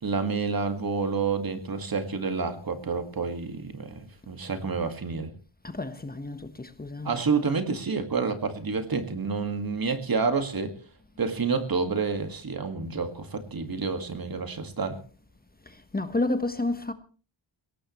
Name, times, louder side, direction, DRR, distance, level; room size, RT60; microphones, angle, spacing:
voice 1, 0.0-5.3 7.0-10.8 11.2-15.0, right 4 dB, 50° right, 2.0 m, -29 dB
voice 2, 5.6-7.1 15.9-16.9, left 2 dB, 20° left, 1.2 m, -30 dB
21.5 x 17.5 x 3.1 m
wide cardioid pair, 95°, 45 cm